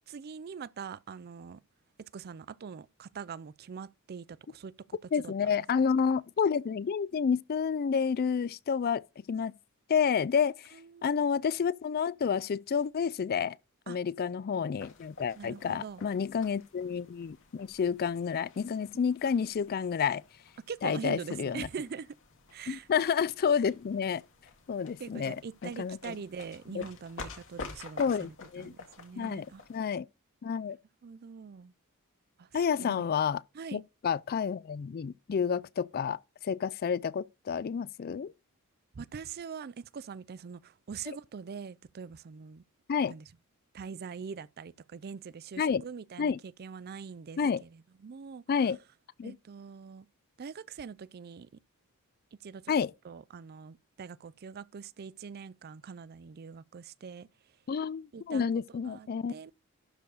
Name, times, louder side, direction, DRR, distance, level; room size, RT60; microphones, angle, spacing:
voice 1, 0.1-1.6 2.1-4.7 5.2-5.6 10.7-11.1 13.9-14.0 15.3-16.0 20.7-22.1 22.5-22.9 25.0-29.6 31.0-31.7 32.4-32.5 32.8-33.1 33.5-33.8 39.0-42.6 43.1-43.3 43.7-48.4 49.2-50.1 50.4-51.5 52.4-52.6 53.0-57.3 58.1-58.5 58.8-59.5, right 6 dB, 45° right, 0.4 m, -43 dB
voice 2, 5.1-9.5 9.9-10.7 11.0-13.6 13.9-20.2 20.8-21.7 22.7-24.2 24.7-25.4 25.6-26.2 26.7-26.8 28.0-28.7 29.2-30.1 30.4-30.8 32.5-33.4 33.7-36.2 36.4-38.3 42.9-43.1 45.6-45.8 46.2-46.4 47.4-47.6 48.5-48.8 49.2-49.4 52.7-52.9 57.7-59.5, left 6 dB, 45° left, 0.3 m, -30 dB
sound 1, 14.8-29.9, left 3 dB, 60° left, 2.1 m, -50 dB
12.0 x 4.5 x 4.8 m
head